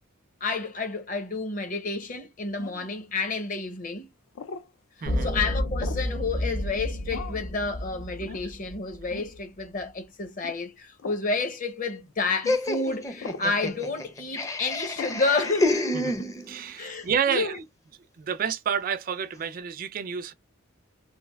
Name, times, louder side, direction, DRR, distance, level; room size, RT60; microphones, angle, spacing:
voice 1, 0.4-4.1 5.2-15.9 16.8-17.6, left 3 dB, 40° left, 0.8 m, -30 dB
sound 1, 2.6-2.9 4.4-4.7 5.8-6.1 7.1-7.5 8.2-8.5 9.1-9.3 10.4-10.6 11.0-11.3 12.4-12.6 13.2-13.5 15.0-15.2, left 5 dB, 65° left, 0.4 m, -39 dB
voice 2, 5.0-5.3 15.9-17.6 18.2-20.3, right 7 dB, 40° right, 0.3 m, -29 dB
sound 2, 5.1-9.4, left 1 dB, 85° left, 1.5 m, -31 dB
Laughter, 12.5-16.7, left 1 dB, 15° left, 0.5 m, -29 dB
3.3 x 2.6 x 3.3 m
head